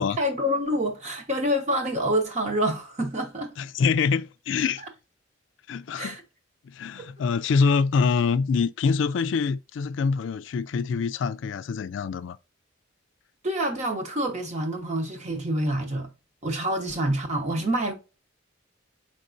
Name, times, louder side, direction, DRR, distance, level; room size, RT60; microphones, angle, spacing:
voice 1, 0.0-3.5 6.0-6.2 7.0-7.1 13.4-16.1 16.4-17.9, equal, 35° right, 1.0 m, -27 dB
voice 2, 3.6-4.8 5.7-6.2 6.6-12.4, left 5 dB, 65° left, 0.3 m, -25 dB
5.3 x 3.7 x 2.5 m
head